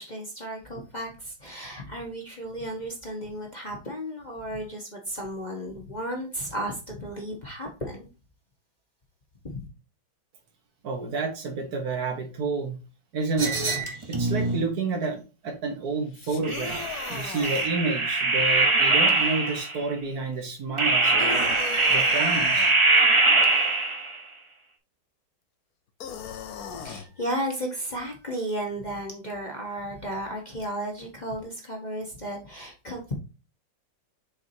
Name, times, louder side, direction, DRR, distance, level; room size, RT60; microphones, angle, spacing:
voice 1, 0.0-8.1 9.4-9.7 26.8-33.1, right 1 dB, 25° left, -1 dB, 1.3 m, -34 dB
voice 2, 10.8-12.8 13.1-13.8 14.1-16.8 17.1-21.6 21.9-22.7, right 4 dB, 60° right, 3 dB, 1.8 m, -30 dB
sound 1, 13.4-14.7 16.4-19.8 20.8-24.2, right 3 dB, 30° right, 0.5 m, -22 dB
sound 2, 16.1-17.7 21.2-22.7 26.0-27.1, left 6 dB, 60° left, 1.2 m, -37 dB
7.1 x 4.9 x 2.7 m, 0.31 s
omnidirectional pair, 2.0 m